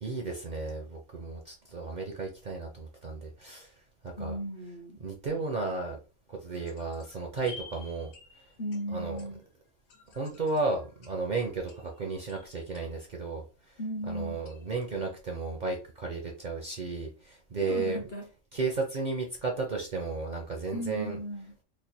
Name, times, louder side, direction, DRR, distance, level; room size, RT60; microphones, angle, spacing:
voice 1, 0.0-3.7 4.0-4.3 5.0-6.0 6.3-8.1 8.9-9.2 10.1-13.8 14.1-18.0 18.5-21.2, right 3 dB, 45° right, 0.6 m, -34 dB
voice 2, 4.2-5.0 8.6-9.4 13.8-14.6 17.7-18.3 20.7-21.5, equal, 50° left, 0.7 m, -36 dB
sound 1, 6.5-13.7 14.5-15.1, left 4 dB, 85° left, 1.2 m, -53 dB
3.2 x 2.2 x 4.2 m
omnidirectional pair, 1.4 m